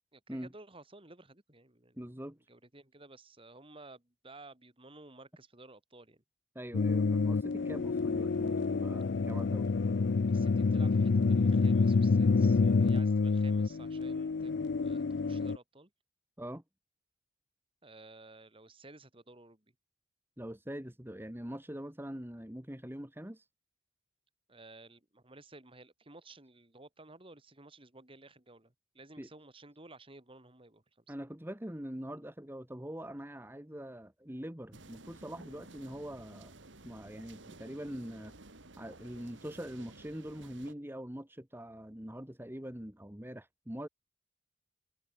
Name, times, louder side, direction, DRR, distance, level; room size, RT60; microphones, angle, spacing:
voice 1, 0.1-2.1 2.5-6.2 10.3-14.6 14.8-15.9 17.8-19.7 24.5-31.1, right 2 dB, 30° right, 2.8 m, -55 dB
voice 2, 2.0-2.4 6.6-9.7 16.4-16.6 20.4-23.5 29.2-29.3 31.1-36.5 36.8-38.3 38.8-43.9, equal, 10° right, 1.8 m, -43 dB
sound 1, 6.7-15.6, left 4 dB, 60° left, 0.5 m, -28 dB
sound 2, 34.7-40.7, right 2 dB, 70° right, 2.7 m, -54 dB
head